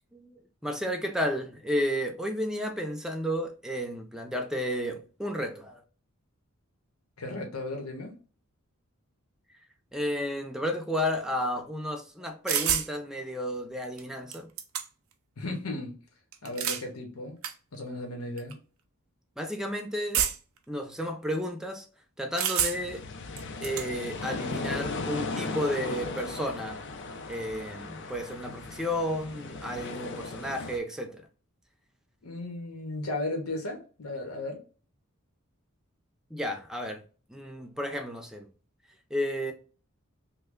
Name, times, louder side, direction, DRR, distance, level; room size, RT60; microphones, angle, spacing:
voice 1, 0.1-5.8 9.9-14.5 19.4-20.3 20.7-21.9 22.2-23.1 23.6-26.8 27.3-31.3 36.3-37.0 37.3-38.4 39.1-39.5, equal, 5° right, 0.5 m, -32 dB
voice 2, 7.2-8.2 15.4-15.9 16.4-17.4 17.7-18.6 32.2-34.6, left 2 dB, 90° left, 0.9 m, -35 dB
sound 1, 12.5-12.9 14.0-14.1 14.3-15.1 16.3-16.9 17.4-17.5 18.4-18.5 20.1-20.6 22.4-23.0 23.4-23.9, right 9 dB, 65° right, 0.5 m, -28 dB
sound 2, 22.7-30.8, left 3 dB, 55° left, 0.4 m, -37 dB
3.1 x 2.2 x 3.6 m
head